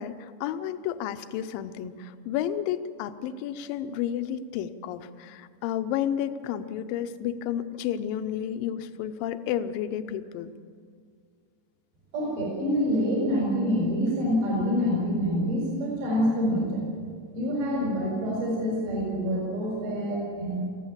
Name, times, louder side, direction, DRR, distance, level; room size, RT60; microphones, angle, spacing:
voice 1, 0.0-10.5, left 10 dB, 80° left, 10 dB, 2.0 m, -31 dB
voice 2, 12.1-16.9 17.3-20.6, equal, 75° right, -2 dB, 6.7 m, -26 dB
21.0 x 15.0 x 8.7 m, 2.1 s
omnidirectional pair, 5.0 m